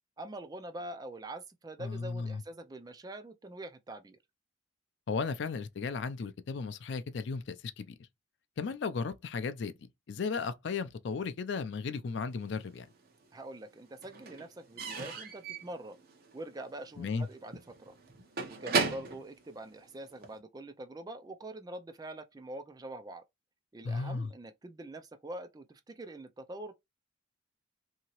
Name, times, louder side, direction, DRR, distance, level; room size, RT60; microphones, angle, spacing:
voice 1, 0.2-4.2 13.3-16.0 16.3-17.9 18.5-23.2 23.7-26.7, right 1 dB, 20° right, 0.3 m, -44 dB
voice 2, 1.8-2.4 5.1-7.9 8.6-9.7 10.1-12.9 17.0-17.3 23.8-24.3, left 4 dB, 60° left, 0.4 m, -35 dB
Slam / Squeak / Wood, 12.5-13.4 13.6-20.4, right 4 dB, 50° right, 0.8 m, -37 dB
2.8 x 2.7 x 2.9 m
head